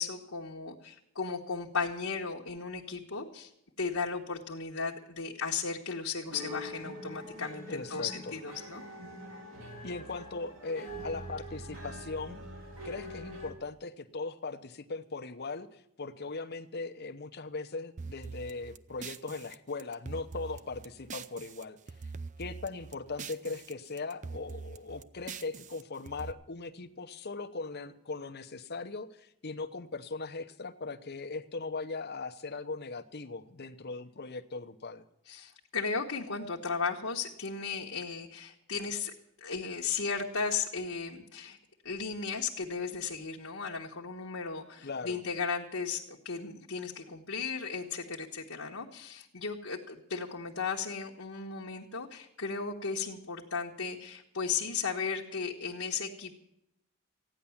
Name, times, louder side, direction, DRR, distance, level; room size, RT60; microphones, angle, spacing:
voice 1, 0.0-3.5 3.8-8.8 35.3-41.6 41.8-56.3, left 5 dB, 65° left, -2 dB, 1.3 m, -35 dB
sound 1, 6.2-13.5, equal, 60° right, 2.9 m, -44 dB
voice 2, 7.7-8.3 9.8-12.4 12.8-21.8 22.4-35.0 44.8-45.2, left 3 dB, 50° left, 10 dB, 0.8 m, -39 dB
sound 2, 18.0-21.6 21.9-23.7 24.0-26.3, right 5 dB, 35° right, 0.5 m, -44 dB
15.0 x 10.0 x 7.2 m, 0.83 s
head